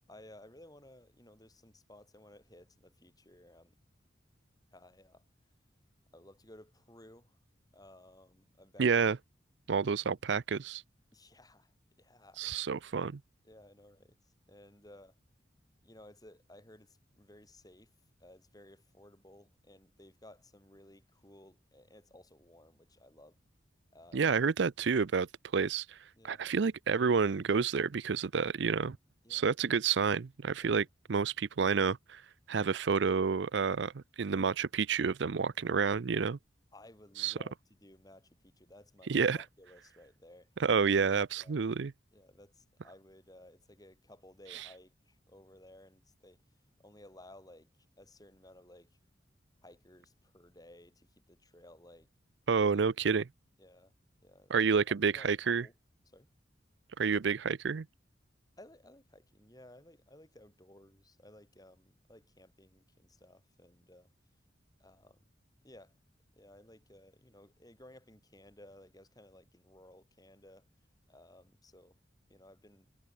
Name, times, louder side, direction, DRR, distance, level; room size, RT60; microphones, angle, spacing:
voice 1, 0.1-3.8 4.7-5.2 6.1-7.4 7.7-9.0 11.1-12.4 13.4-15.2 15.8-17.9 18.2-23.4 23.9-24.3 26.2-26.4 29.2-29.5 30.6-30.9 36.7-40.6 41.4-41.6 42.1-46.4 46.8-49.0 49.6-52.1 53.6-53.9 54.2-55.7 56.1-56.3 58.6-64.1 64.8-65.2 65.6-65.9 66.4-70.7 71.1-72.0 72.3-72.9, left 1 dB, 20° left, 6.6 m, -57 dB
voice 2, 8.8-9.2 9.7-10.8 12.4-13.2 24.1-25.3 25.5-26.0 26.2-29.0 29.3-32.2 32.5-36.4 37.2-37.3 39.1-39.4 40.6-41.9 44.5-44.6 52.5-53.3 54.5-55.7 57.0-57.9, right 5 dB, 70° right, 0.5 m, -29 dB
head